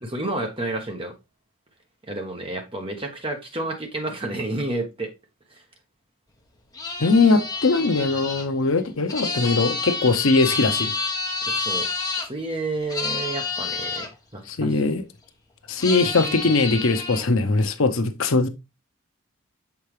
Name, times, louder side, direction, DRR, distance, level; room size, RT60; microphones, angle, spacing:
voice 1, 0.0-1.1 2.1-5.1 5.5-5.6 11.5-11.9 12.2-14.9, right 2 dB, 25° right, 1.2 m, -30 dB
sound 1, 6.7-12.3 12.9-14.1 15.8-17.2, left 4 dB, 15° left, 0.8 m, -29 dB
voice 2, 7.0-10.9 14.5-15.0 15.7-18.5, left 3 dB, 70° left, 0.7 m, -21 dB
7.1 x 4.6 x 3.2 m
head